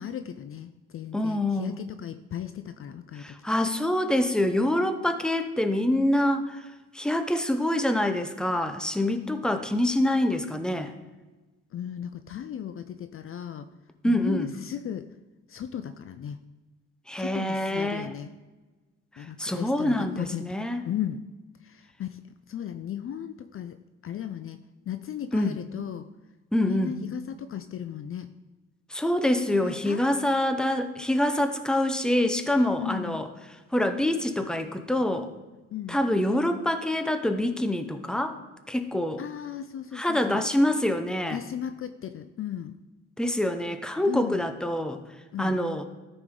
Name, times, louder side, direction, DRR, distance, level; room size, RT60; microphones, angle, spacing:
voice 1, 0.0-3.3 11.7-13.7 14.0-15.1 15.5-16.4 17.2-18.3 19.2-20.5 20.8-21.2 21.6-22.2 22.5-23.8 24.0-26.1 26.7-28.3 29.6-30.0 32.8-33.2 35.7-36.0 39.2-40.5 41.3-42.7 44.0-44.4 45.3-45.6, left 9 dB, 45° left, 11 dB, 0.5 m, -35 dB
voice 2, 1.1-1.8 3.2-6.6 6.9-10.9 14.0-14.5 17.1-18.1 19.4-20.8 25.3-25.6 26.5-27.0 28.9-33.3 33.7-35.3 35.9-38.3 38.7-39.2 39.9-41.4 43.2-45.0 45.4-45.8, left 1 dB, 5° left, 8 dB, 0.8 m, -26 dB
13.0 x 5.0 x 3.8 m, 1.2 s
cardioid pair, 90°, 30 cm